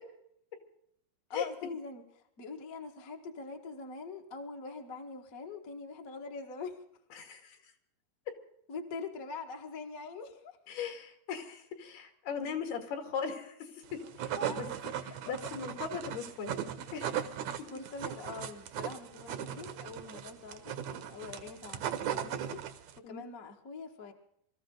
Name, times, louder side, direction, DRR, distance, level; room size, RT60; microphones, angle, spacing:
voice 1, 1.3-2.0 2.4-6.8 8.7-10.6 14.4-14.7 15.4-15.5 17.7-22.6 23.0-24.1, left 4 dB, 50° left, 2 dB, 1.0 m, -43 dB
voice 2, 7.2-7.6 10.7-14.7 15.3-17.1 23.0-23.3, left 6 dB, 75° left, 5 dB, 4.1 m, -39 dB
sound 1, 13.9-23.0, right 9 dB, 70° right, 1.7 m, -38 dB
24.5 x 14.0 x 3.9 m, 0.71 s
omnidirectional pair, 4.6 m